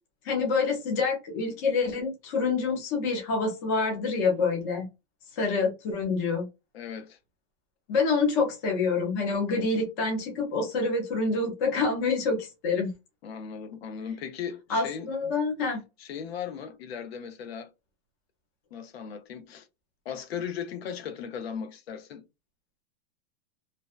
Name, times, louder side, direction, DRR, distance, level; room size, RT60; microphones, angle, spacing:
voice 1, 0.2-4.9 5.4-6.5 7.9-12.9 14.7-15.8, left 4 dB, 20° left, 0.3 m, -27 dB
voice 2, 6.7-7.2 13.2-15.1 16.0-17.7 18.7-19.7 20.1-22.2, left 7 dB, 70° left, 0.6 m, -37 dB
2.7 x 2.0 x 2.2 m
supercardioid pair, 170°, 32 cm